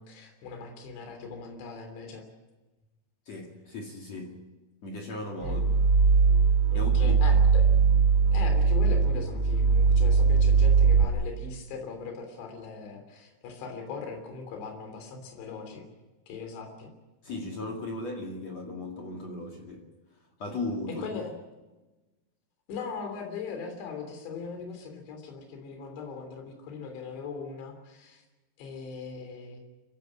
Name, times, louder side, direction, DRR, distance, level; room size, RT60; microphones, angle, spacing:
voice 1, 0.0-2.2 5.4-5.7 6.7-7.7 8.3-15.9 16.3-16.9 21.0-21.3 22.7-28.2 28.6-29.6, left 5 dB, 65° left, 5.4 m, -40 dB
voice 2, 3.3-4.4 4.8-5.8 6.7-7.4 17.2-19.8 20.4-21.1, left 2 dB, 45° left, 2.5 m, -37 dB
sound 1, 5.4-11.0, right 5 dB, 85° right, 0.9 m, -21 dB
25.5 x 16.5 x 8.7 m
omnidirectional pair, 5.8 m